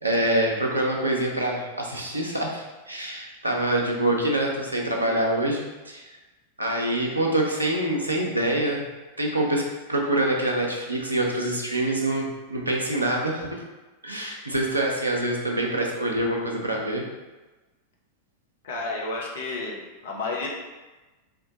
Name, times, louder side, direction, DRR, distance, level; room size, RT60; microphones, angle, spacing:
voice 1, 0.0-6.1 6.6-8.8 9.2-13.6 14.0-17.1, right 1 dB, 80° right, 0 dB, 0.8 m, -25 dB
voice 2, 18.6-20.5, left 3 dB, 60° left, -2 dB, 1.0 m, -31 dB
4.4 x 3.0 x 3.8 m, 1.2 s
figure-of-eight pair, 90°, 0 cm